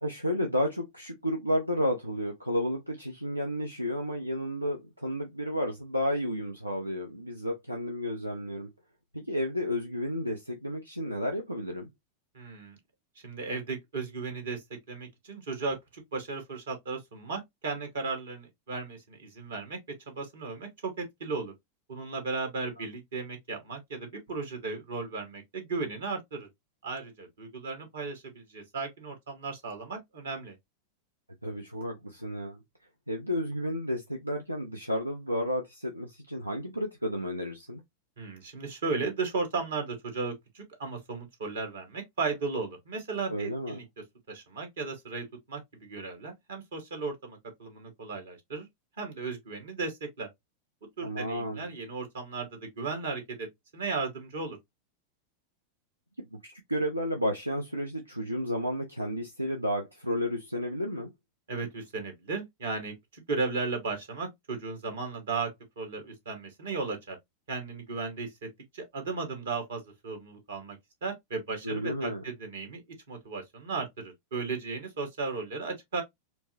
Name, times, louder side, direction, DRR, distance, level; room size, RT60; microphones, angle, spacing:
voice 1, 0.0-8.7 9.1-11.9 22.8-22.9 31.4-32.6 33.1-37.8 43.3-43.8 51.0-51.7 56.3-61.1 71.6-72.2, equal, 85° right, 0.5 m, -32 dB
voice 2, 12.3-12.8 13.2-14.6 14.9-19.8 20.1-21.5 21.9-26.5 26.8-30.5 38.2-43.8 44.3-48.7 49.0-50.3 51.0-53.5 53.7-54.6 61.5-65.5 65.8-67.2 67.5-68.5 68.7-72.8 73.1-76.0, right 4 dB, 65° right, 1.5 m, -35 dB
4.3 x 2.1 x 2.7 m
figure-of-eight pair, 90°, 0 cm